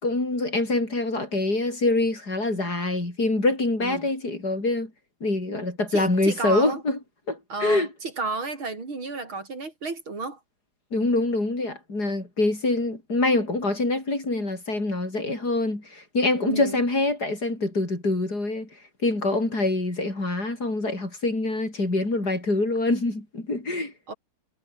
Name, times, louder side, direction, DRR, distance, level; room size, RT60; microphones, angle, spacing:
voice 1, 0.0-4.9 5.2-7.0 7.3-7.9 10.9-18.7 19.0-23.9, left 2 dB, 45° left, 7.5 m, -25 dB
voice 2, 5.9-6.8 7.5-10.4 16.4-16.8 24.1-24.2, right 3 dB, 70° right, 5.4 m, -32 dB
omnidirectional pair, 2.3 m